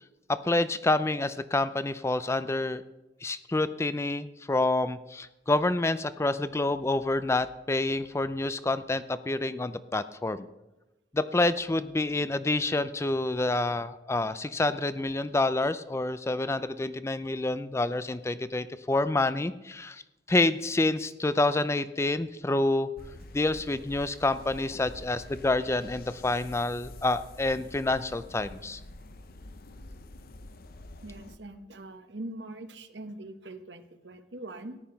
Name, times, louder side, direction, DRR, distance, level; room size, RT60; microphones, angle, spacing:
voice 1, 0.3-2.8 3.2-10.5 11.1-20.0 20.3-22.9 23.3-28.8, left 2 dB, 15° left, 14 dB, 0.4 m, -28 dB
sound 1, 23.0-31.4, left 2 dB, 55° left, 0.8 m, -47 dB
voice 2, 31.0-34.8, right 1 dB, 80° right, 9 dB, 1.1 m, -42 dB
14.0 x 9.7 x 5.7 m, 0.99 s
head